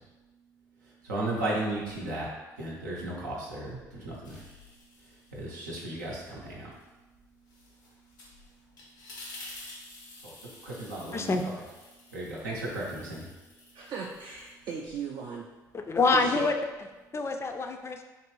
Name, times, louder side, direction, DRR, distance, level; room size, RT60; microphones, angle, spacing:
voice 1, 1.0-2.3 2.6-4.4 5.3-6.7 10.2-10.3 10.6-11.3 12.1-13.3, right 1 dB, 90° right, -4 dB, 0.6 m, -34 dB
sound 1, 4.2-5.8 6.2-14.9, left 2 dB, 85° left, 0.6 m, -50 dB
voice 2, 11.1-11.4 15.7-16.5 17.1-18.0, left 3 dB, 30° left, 5 dB, 0.3 m, -26 dB
voice 3, 13.7-15.5 16.1-16.5, right 6 dB, 50° right, -1 dB, 0.4 m, -37 dB
3.0 x 2.5 x 3.1 m, 1.2 s
hypercardioid pair, 55°, 9 cm